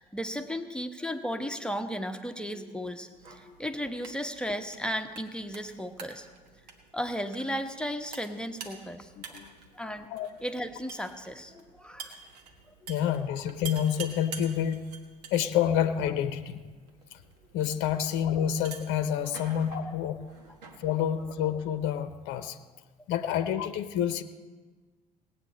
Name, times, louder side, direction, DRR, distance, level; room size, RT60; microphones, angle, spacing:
voice 1, 0.0-6.3 6.9-9.4 9.7-10.1 10.4-12.1 12.8-12.9, equal, 5° left, 5 dB, 1.2 m, -35 dB
sound 1, 3.1-22.0, right 5 dB, 80° right, 1.4 m, -48 dB
voice 2, 9.2-9.6 10.1-10.3 12.9-14.9 15.3-16.6 17.1-17.2 17.5-20.2 20.8-22.6 23.1-24.2, left 9 dB, 65° left, 11 dB, 0.8 m, -28 dB
19.0 x 8.6 x 4.3 m, 1.4 s
hypercardioid pair, 55°, 20 cm